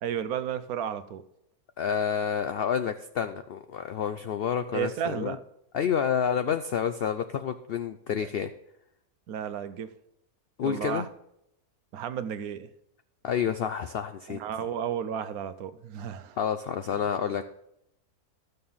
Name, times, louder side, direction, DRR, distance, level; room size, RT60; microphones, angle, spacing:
voice 1, 0.0-1.2 4.7-5.4 8.2-8.3 9.3-9.9 10.6-11.1 11.9-12.7 14.3-16.4 16.9-17.0, right 8 dB, 75° right, 12 dB, 1.1 m, -33 dB
voice 2, 1.8-5.4 5.7-8.5 10.6-11.1 13.2-14.4 16.4-17.4, left 7 dB, 75° left, 10 dB, 0.5 m, -29 dB
13.0 x 6.8 x 5.5 m, 0.80 s
omnidirectional pair, 1.6 m